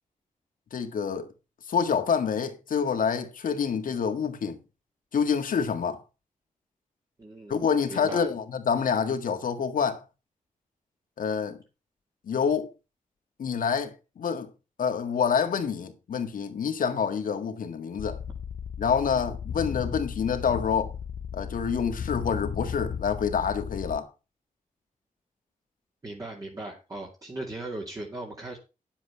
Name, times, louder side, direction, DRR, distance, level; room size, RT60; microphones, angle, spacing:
voice 1, 0.7-1.3 1.7-4.6 5.1-6.0 7.5-10.0 11.2-11.6 12.3-12.7 13.4-14.5 14.8-18.2 18.8-20.9 21.3-24.1, left 6 dB, 90° left, 1.8 m, -27 dB
voice 2, 7.2-7.6 7.9-8.3 26.0-28.6, right 2 dB, 25° right, 2.5 m, -38 dB
sound 1, 18.0-24.0, left 7 dB, 70° left, 0.6 m, -35 dB
10.5 x 7.4 x 5.7 m
wide cardioid pair, 155°, 14 cm